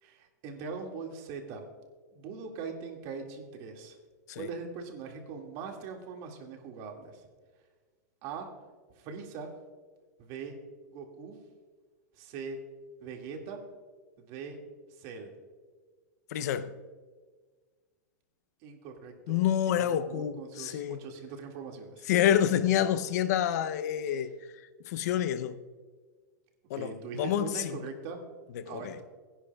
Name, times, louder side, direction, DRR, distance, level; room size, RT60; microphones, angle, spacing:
voice 1, 0.0-1.6 2.1-4.0 4.3-7.3 8.2-8.5 9.0-9.5 10.2-10.6 10.9-11.4 12.2-12.6 13.0-13.6 14.2-14.6 15.0-15.3 18.6-22.1 24.0-24.2 26.7-28.2 28.7-29.0, right 5 dB, 45° right, 2.0 m, -41 dB
voice 2, 16.3-16.7 19.3-21.0 22.1-24.3 24.9-25.6 26.7-27.8 28.6-28.9, left 10 dB, 65° left, 0.6 m, -28 dB
22.0 x 10.0 x 2.3 m
supercardioid pair, 140°, 10 cm